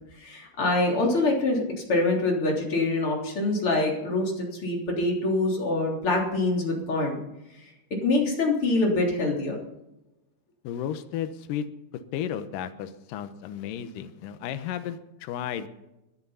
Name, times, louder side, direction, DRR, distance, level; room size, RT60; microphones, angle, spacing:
voice 1, 0.2-1.6 1.9-7.2 8.0-9.6, left 2 dB, 30° left, 0 dB, 3.7 m, -25 dB
voice 2, 10.6-11.7 12.1-15.7, left 9 dB, 80° left, 10 dB, 1.9 m, -33 dB
18.0 x 10.5 x 5.6 m, 0.93 s
omnidirectional pair, 5.2 m